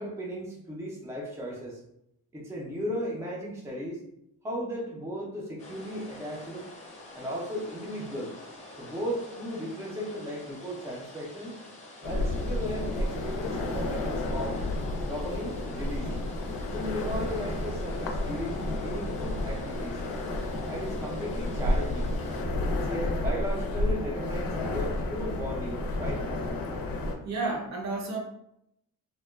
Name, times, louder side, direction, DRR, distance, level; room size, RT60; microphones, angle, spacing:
voice 1, 0.0-1.8 2.3-4.0 4.4-6.6 7.1-8.3 8.8-11.6 12.0-14.6 15.1-16.2 16.7-20.0 20.6-22.2 22.7-26.3, equal, 10° right, -3 dB, 0.4 m, -36 dB
sound 1, 5.6-22.4, left 2 dB, 20° left, 0.7 m, -48 dB
sound 2, 12.0-27.2, left 1 dB, 75° left, 0.5 m, -31 dB
voice 2, 27.2-28.2, right 3 dB, 50° right, 0 dB, 0.6 m, -31 dB
2.8 x 2.2 x 2.2 m, 0.78 s
wide cardioid pair, 165°, 35 cm